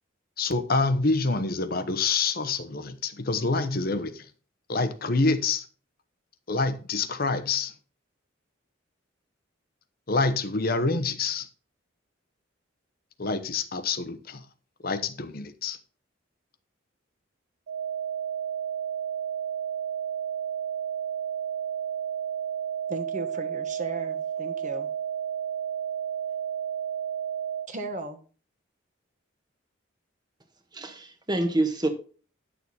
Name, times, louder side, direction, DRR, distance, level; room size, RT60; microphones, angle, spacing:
voice 1, 0.4-4.3 4.7-5.6 6.5-7.7 10.1-11.5 13.2-14.4 14.8-15.8, left 3 dB, 45° left, 0.9 m, -27 dB
sound 1, 17.7-27.7, right 9 dB, 70° right, 0.4 m, -32 dB
voice 2, 22.9-24.9 27.7-28.2, right 2 dB, 40° right, 1.4 m, -36 dB
voice 3, 30.7-31.9, right 2 dB, 20° right, 1.3 m, -27 dB
10.0 x 6.9 x 4.1 m
head